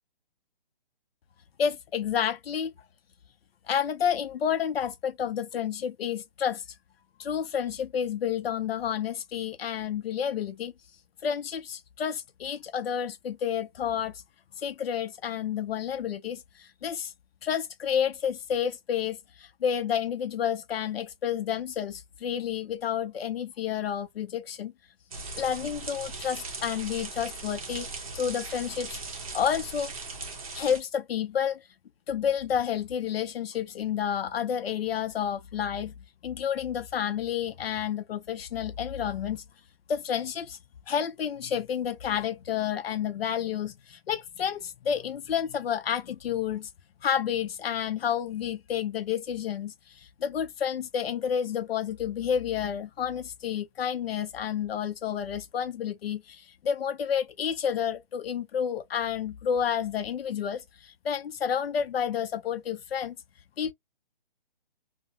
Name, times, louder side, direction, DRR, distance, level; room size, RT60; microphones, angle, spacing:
voice 1, 1.6-2.7 3.7-6.7 7.2-10.7 11.2-14.2 14.6-17.1 17.4-24.7 25.3-29.0 29.3-29.9 30.5-31.7 32.1-35.9 36.2-39.4 39.9-40.6 40.9-46.7 47.0-63.1 63.6-63.7, left 8 dB, 85° left, 0.5 m, -30 dB
sound 1, 25.1-30.8, right 3 dB, 35° right, 0.8 m, -39 dB
2.8 x 2.0 x 2.6 m
hypercardioid pair, 175°, 29 cm